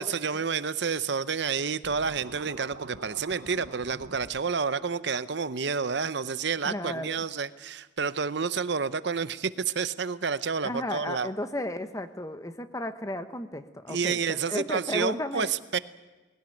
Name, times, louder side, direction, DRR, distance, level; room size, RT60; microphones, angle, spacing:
voice 1, 0.0-11.3 13.9-15.8, right 5 dB, 60° right, 14 dB, 0.7 m, -29 dB
Scratching (performance technique), 1.8-4.4, right 3 dB, 85° right, 1.0 m, -46 dB
voice 2, 6.6-7.2 10.6-15.8, left 1 dB, 15° left, 9 dB, 1.0 m, -34 dB
20.5 x 17.0 x 9.0 m, 1.2 s
head